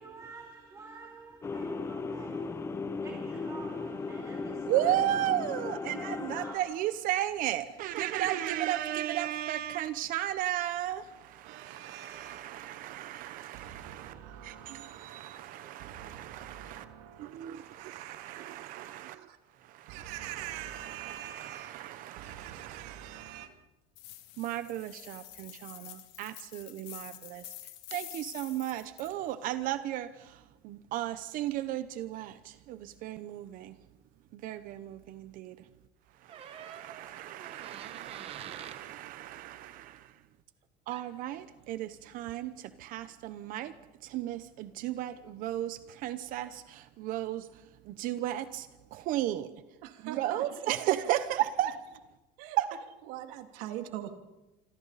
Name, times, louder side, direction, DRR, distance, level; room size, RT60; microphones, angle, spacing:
voice 1, 0.0-4.8 5.9-6.8, right 4 dB, 20° right, 2.5 m, -50 dB
heavenly-army, 1.4-6.6, left 4 dB, 15° left, 0.8 m, -37 dB
voice 2, 4.7-16.8 17.2-19.3 19.6-23.5 24.4-27.4 27.9-33.8 34.3-35.7 36.2-40.2 40.9-43.7 44.0-49.5 50.0-51.8 52.6-52.8, right 13 dB, 50° right, 0.9 m, -35 dB
voice 3, 11.4-12.7 13.5-19.4 19.9-23.5 49.8-50.5 51.3-51.4 52.4-52.6 53.1-54.1, right 11 dB, 85° right, 2.5 m, -45 dB
sound 1, 24.0-29.1, left 15 dB, 75° left, 2.4 m, -48 dB
sound 2, 36.3-38.8 40.9-41.1, right 8 dB, 35° right, 1.4 m, -47 dB
26.5 x 26.5 x 4.2 m
cardioid pair, 165°, 18 cm